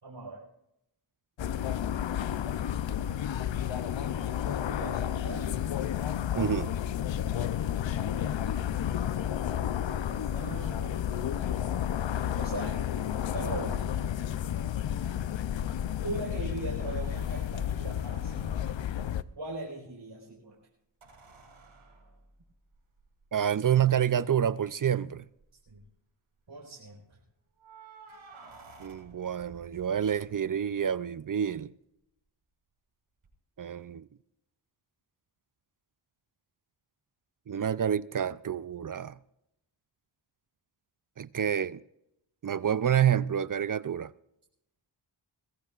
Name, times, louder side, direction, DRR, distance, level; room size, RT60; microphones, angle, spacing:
voice 1, 0.0-0.4 3.7-5.5 9.8-11.0 12.4-12.8 13.3-13.9 16.0-18.8 19.3-20.6 25.7-25.8 26.5-27.2, right 2 dB, 60° right, 4.7 m, -40 dB
sound 1, 1.4-19.2, left 10 dB, 65° left, 0.7 m, -31 dB
voice 2, 6.3-6.8 23.3-25.2 28.8-31.7 33.6-34.0 37.5-39.2 41.2-41.8 42.4-44.1, right 9 dB, 45° right, 0.5 m, -28 dB
sound 2, 21.0-23.4 24.4-24.5 24.7-24.8 25.4-25.9 27.6-30.7 33.2-33.3, right 4 dB, 85° right, 7.1 m, -54 dB
22.5 x 16.5 x 2.5 m
cardioid pair, 55°, 48 cm